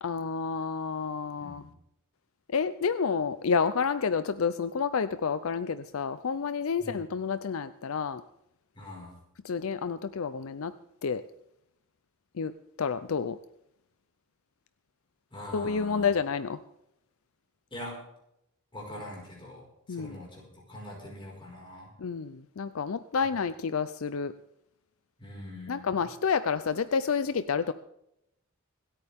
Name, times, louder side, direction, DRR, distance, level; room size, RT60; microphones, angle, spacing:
voice 1, 0.0-1.6 2.5-8.2 9.4-10.7 11.0-11.2 12.3-12.5 12.8-13.4 15.5-16.6 19.9-20.2 22.0-24.3 25.7-27.7, left 5 dB, 70° left, 13 dB, 0.5 m, -29 dB
voice 2, 1.4-1.7 6.8-6.9 8.7-9.1 15.3-16.1 17.7-18.1 18.7-20.4 20.7-21.9 25.2-26.0, left 1 dB, 25° left, -2 dB, 5.1 m, -43 dB
26.5 x 9.0 x 3.6 m, 0.81 s
head